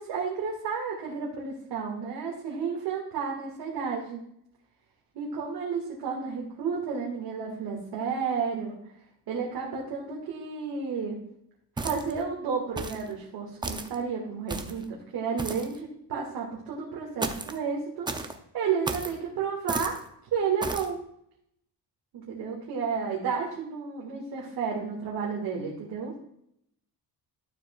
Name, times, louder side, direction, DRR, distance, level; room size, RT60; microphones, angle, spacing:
voice 1, 0.0-4.2 5.1-8.8 9.3-11.2 11.8-18.2 18.5-20.0 20.3-21.0 22.1-26.1, right 6 dB, 75° right, -3 dB, 1.9 m, -32 dB
sound 1, 11.8-12.2 12.8-13.1 13.6-14.0 14.5-14.8 15.4-15.8 17.2-17.6 18.1-18.4 18.9-19.2 19.7-20.0 20.6-20.9, right 3 dB, 10° right, 0.4 m, -33 dB
12.0 x 7.1 x 2.3 m, 0.72 s
cardioid pair, 175°, 39 cm